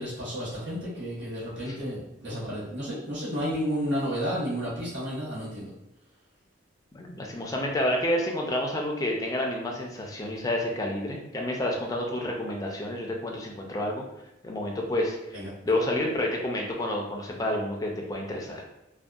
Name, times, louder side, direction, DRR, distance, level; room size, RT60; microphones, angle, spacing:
voice 1, 0.0-5.7 15.3-15.5, equal, 75° right, -10 dB, 1.1 m, -32 dB
voice 2, 6.9-14.0 14.4-18.6, left 1 dB, 20° left, 0 dB, 0.3 m, -29 dB
2.6 x 2.2 x 2.3 m, 0.91 s
head